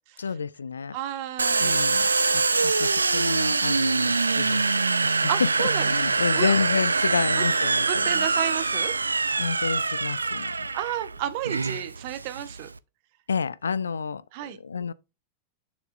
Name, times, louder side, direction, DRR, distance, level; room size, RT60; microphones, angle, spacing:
voice 1, 0.2-1.0 1.6-4.8 5.0-8.3 9.4-10.7 13.3-14.2 14.5-14.9, left 5 dB, 75° left, 0.4 m, -30 dB
voice 2, 0.9-2.0 5.3-5.9 6.3-6.7 7.4-7.5 7.9-8.9 10.7-12.7 14.3-14.6, right 13 dB, 50° right, 0.8 m, -32 dB
Domestic sounds home sounds, 1.4-12.8, right 4 dB, 80° right, 0.3 m, -24 dB
6.9 x 6.9 x 2.5 m
figure-of-eight pair, 90°, 0 cm